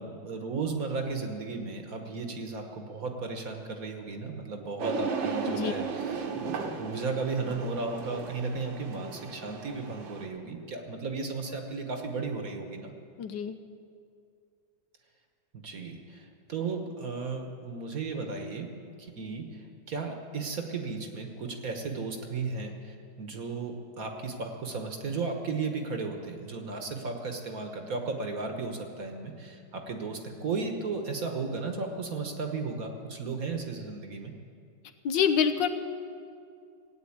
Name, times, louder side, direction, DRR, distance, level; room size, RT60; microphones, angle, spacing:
voice 1, 0.0-12.9 15.5-18.7 19.0-34.3, right 4 dB, 50° right, 4 dB, 1.5 m, -35 dB
sound 1, 4.8-10.3, right 5 dB, 75° right, 1.9 m, -35 dB
voice 2, 13.2-13.5 35.0-35.7, left 7 dB, 70° left, 8 dB, 1.3 m, -26 dB
16.0 x 9.0 x 8.6 m, 2.4 s
omnidirectional pair, 2.2 m